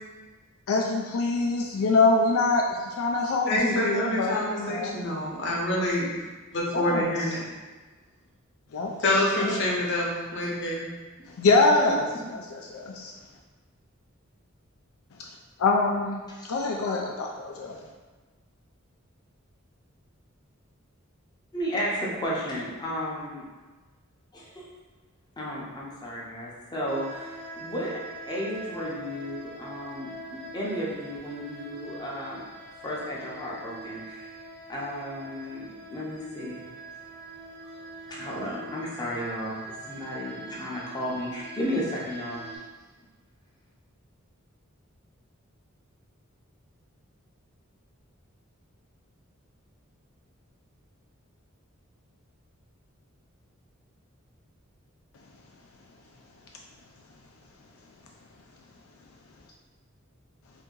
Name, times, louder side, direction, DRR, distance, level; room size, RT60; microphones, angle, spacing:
voice 1, 0.7-5.1 6.7-7.4 8.7-9.6 11.4-13.1 15.6-17.8, left 3 dB, 80° left, 0 dB, 0.4 m, -25 dB
voice 2, 3.5-6.1 6.5-7.4 9.0-10.9, left 1 dB, 60° left, -3 dB, 0.8 m, -26 dB
voice 3, 16.3-16.6 16.9-17.0 21.5-23.4 24.3-24.6 25.4-32.5 32.8-34.3 34.7-36.7 38.1-42.6, equal, 20° left, -5 dB, 0.6 m, -34 dB
sound 1, 26.9-42.6, right 2 dB, 55° right, 0.7 m, -43 dB
2.7 x 2.6 x 3.7 m, 1.3 s
head